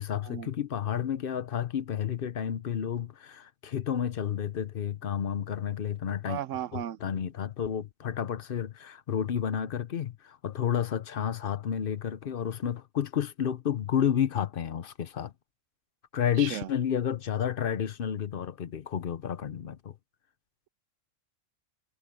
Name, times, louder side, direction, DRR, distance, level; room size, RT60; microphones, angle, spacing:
voice 1, 0.0-6.4 6.7-15.3 16.1-19.9, left 9 dB, 50° left, 0.8 m, -31 dB
voice 2, 6.3-7.0 16.4-16.7, right 11 dB, 80° right, 1.0 m, -35 dB
omnidirectional pair, 1.3 m